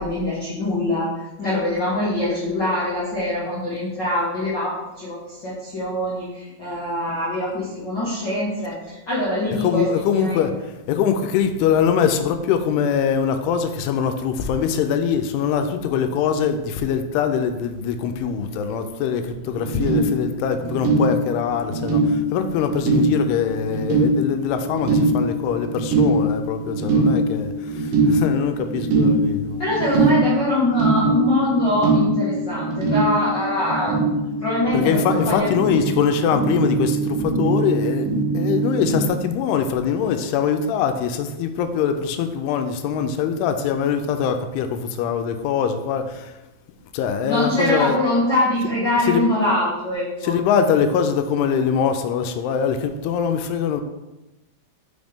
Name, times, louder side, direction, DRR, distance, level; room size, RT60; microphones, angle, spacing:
voice 1, 0.0-9.9 10.1-10.4 29.6-33.9 34.4-35.8 47.2-50.3, left 1 dB, 65° left, -10 dB, 1.1 m, -23 dB
voice 2, 9.5-29.6 34.7-38.1 38.3-46.4 46.9-48.0 49.0-49.2 50.2-53.8, left 7 dB, 90° left, 7 dB, 2.6 m, -23 dB
sound 1, 19.5-39.1, right 2 dB, 70° right, 2.6 m, -22 dB
6.3 x 5.2 x 3.5 m, 0.99 s
omnidirectional pair, 4.6 m